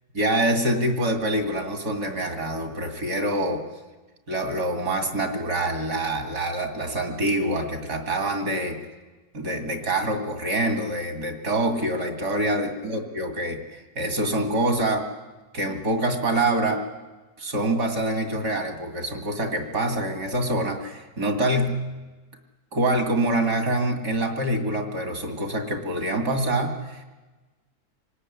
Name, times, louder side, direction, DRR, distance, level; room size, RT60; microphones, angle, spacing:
voice 1, 0.1-3.6 4.3-8.8 9.3-15.1 15.5-16.8 17.4-21.8 22.7-27.0, right 1 dB, 80° right, 5 dB, 3.3 m, -25 dB
26.0 x 18.5 x 9.9 m, 1.2 s
omnidirectional pair, 1.6 m